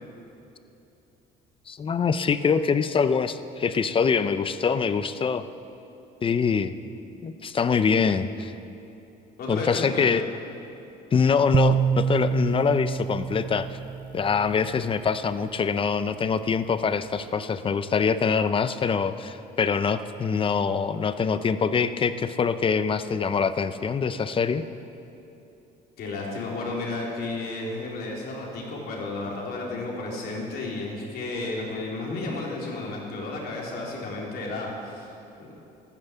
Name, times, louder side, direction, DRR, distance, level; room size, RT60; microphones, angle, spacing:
voice 1, 1.7-5.4 6.2-6.7 7.2-8.5 9.5-10.3 11.1-13.7 14.1-24.7, left 6 dB, 30° left, 12 dB, 0.7 m, -24 dB
voice 2, 9.4-10.1 26.0-35.5, left 2 dB, 70° left, -2 dB, 3.8 m, -33 dB
sound 1, 11.5-14.8, right 7 dB, 30° right, 0.5 m, -26 dB
13.5 x 12.0 x 8.2 m, 2.9 s
cardioid pair, 110°, 17 cm